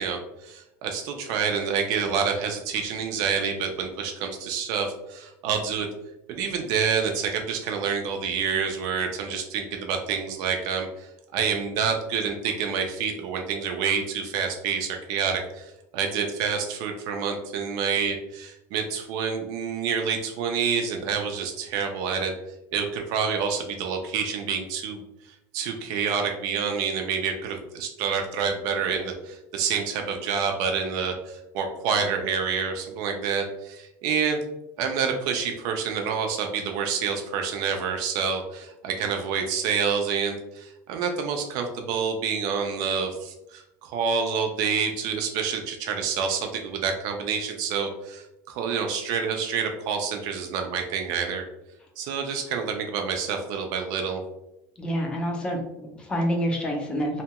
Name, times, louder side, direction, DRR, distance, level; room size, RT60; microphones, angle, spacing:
voice 1, 0.0-5.9 6.3-22.3 22.7-25.0 25.3-34.4 34.8-51.4 52.0-54.2, right 6 dB, 55° right, 4 dB, 0.3 m, -28 dB
voice 2, 54.8-57.2, equal, 10° left, 1 dB, 0.4 m, -27 dB
2.7 x 2.2 x 2.8 m, 0.91 s
cardioid pair, 175°, 8 cm